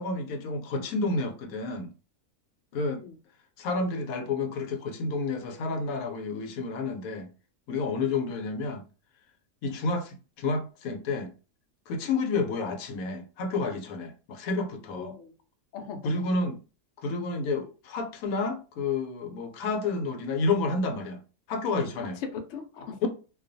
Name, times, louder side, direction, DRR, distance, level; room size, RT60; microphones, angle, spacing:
voice 1, 0.0-1.9 2.7-3.0 3.6-7.3 7.7-8.8 9.6-11.3 11.9-15.1 16.0-16.6 17.0-21.2 21.5-22.2 23.0-23.1, left 3 dB, 90° left, 1.0 m, -30 dB
voice 2, 14.9-15.3 15.7-16.1 22.2-23.1, left 6 dB, 70° left, 0.8 m, -38 dB
2.3 x 2.3 x 2.5 m
omnidirectional pair, 1.4 m